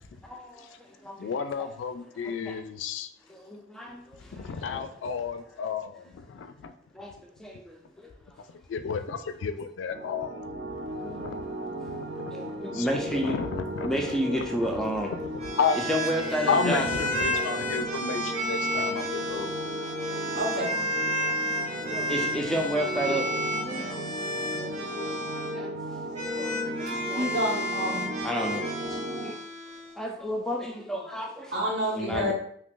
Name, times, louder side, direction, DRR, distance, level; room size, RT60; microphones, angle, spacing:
voice 1, 0.2-1.3 1.6-1.7 2.2-2.6 3.3-4.8 6.9-7.1 7.4-8.1 11.0-11.2 12.3-13.4 13.8-15.1 15.7-16.9 17.3-17.9 18.4-19.1 19.4-20.2 21.2-21.3 21.8-24.0 24.6-25.8 26.1-27.3 28.2-29.4 30.0-31.5 32.0-32.3, equal, 5° left, 0 dB, 0.4 m, -33 dB
voice 2, 1.2-3.1 4.3-6.7 8.7-10.4 11.2-11.4 12.2-12.4 12.7-12.9 13.1-13.9 14.3-14.4 15.6-15.8 16.5-19.6, left 5 dB, 90° left, 9 dB, 0.3 m, -31 dB
sound 1, 9.9-29.3, right 1 dB, 90° right, 0.5 m, -35 dB
sound 2, 15.4-25.5 26.1-29.9, equal, 40° right, 0.8 m, -32 dB
voice 3, 20.3-20.7 27.2-28.1 31.5-32.3, equal, 70° right, -1 dB, 0.9 m, -28 dB
2.8 x 2.4 x 3.6 m, 0.63 s
head